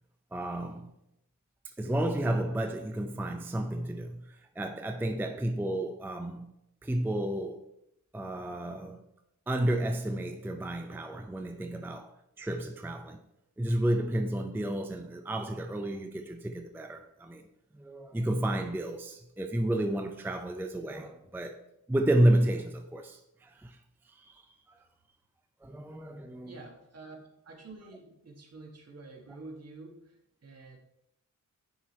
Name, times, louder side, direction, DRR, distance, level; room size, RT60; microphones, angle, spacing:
voice 1, 0.3-0.9 1.8-6.5 6.8-7.6 8.1-9.0 9.5-13.2 13.6-17.4 17.7-21.6 21.9-23.8 24.1-24.8 25.6-26.5, right 1 dB, 5° right, 0.4 m, -31 dB
voice 2, 26.4-30.8, right 3 dB, 50° right, 1.5 m, -48 dB
10.0 x 4.7 x 4.2 m
wide cardioid pair, 150°, 33 cm